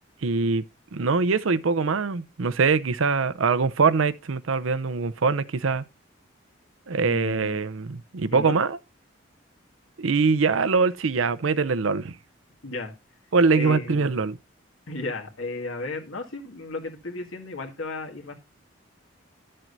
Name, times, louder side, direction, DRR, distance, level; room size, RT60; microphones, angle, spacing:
voice 1, 0.2-0.6 0.9-5.8 6.9-8.8 10.0-12.2 13.3-14.4, right 4 dB, 80° right, 0.6 m, -23 dB
voice 2, 7.1-7.6 8.3-8.6 12.6-12.9 13.5-14.1 14.9-18.4, left 2 dB, 85° left, 1.9 m, -34 dB
11.5 x 7.6 x 2.6 m
head